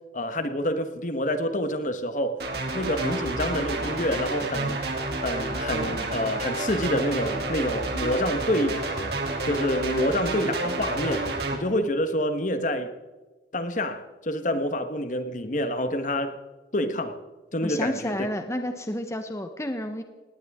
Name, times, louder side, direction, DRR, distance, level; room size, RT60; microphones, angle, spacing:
voice 1, 0.1-2.4 2.7-4.8 5.2-8.8 9.4-11.2 11.5-12.9 13.5-16.4 16.7-17.2 17.5-18.3, left 1 dB, 45° left, 9 dB, 1.4 m, -27 dB
sound 1, 2.4-11.5, right 2 dB, 65° right, 3.0 m, -29 dB
voice 2, 17.6-20.0, left 1 dB, 15° left, 7 dB, 1.0 m, -30 dB
19.0 x 18.0 x 3.7 m, 1.2 s
head